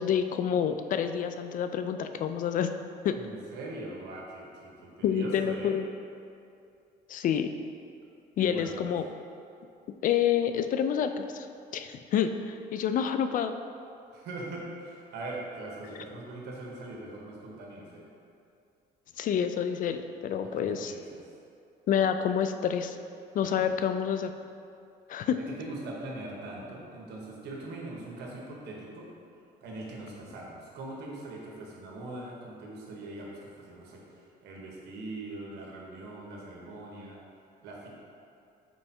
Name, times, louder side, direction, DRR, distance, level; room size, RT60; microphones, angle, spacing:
voice 1, 0.0-2.7 3.0-3.2 5.0-5.9 7.1-7.5 8.4-9.0 10.0-11.5 11.7-13.5 19.2-20.9 21.9-23.0 23.3-24.3 25.1-25.4, left 8 dB, 50° left, 9 dB, 0.4 m, -28 dB
voice 2, 3.1-5.8 8.4-8.9 14.1-18.1 20.4-21.2 23.4-23.7 25.3-29.1 29.6-37.2 37.6-37.9, right 2 dB, 80° right, -2 dB, 1.4 m, -41 dB
5.4 x 4.6 x 4.4 m, 2.5 s
cardioid pair, 110°, 17 cm